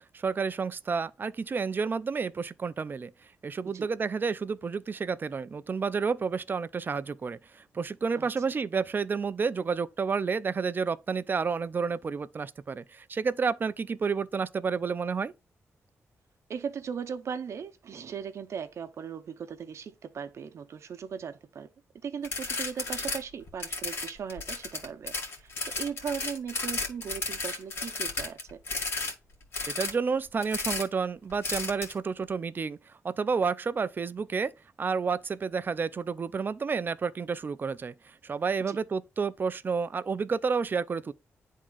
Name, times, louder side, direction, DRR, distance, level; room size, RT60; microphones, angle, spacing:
voice 1, 0.0-3.1 3.4-15.3 29.7-32.8 33.0-34.5 34.8-41.1, right 5 dB, 40° right, 0.5 m, -30 dB
voice 2, 16.5-21.7 22.0-28.6 38.7-38.8, right 7 dB, 65° right, 0.9 m, -38 dB
sound 1, 22.2-23.2 23.5-29.1 29.5-29.9 30.4-30.9 31.4-31.9, left 3 dB, 55° left, 2.0 m, -33 dB
10.5 x 3.7 x 2.5 m
cardioid pair, 95°, 5 cm